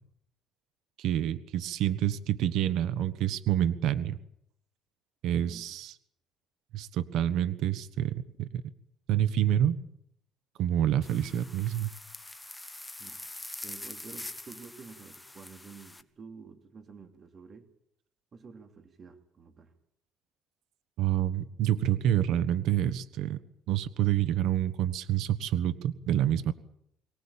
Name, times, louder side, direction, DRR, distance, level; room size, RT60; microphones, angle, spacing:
voice 1, 1.0-4.2 5.2-5.9 6.7-8.6 9.1-9.8 10.6-11.9 21.0-23.4 23.7-26.5, right 11 dB, 70° right, 14 dB, 1.3 m, -27 dB
voice 2, 5.4-5.8 13.0-13.2 13.6-17.7 18.3-19.7, right 5 dB, 35° right, 7 dB, 3.1 m, -50 dB
sound 1, 11.0-16.0, left 1 dB, 5° left, 1.3 m, -44 dB
24.0 x 18.5 x 8.8 m, 0.73 s
cardioid pair, 130°, 0 cm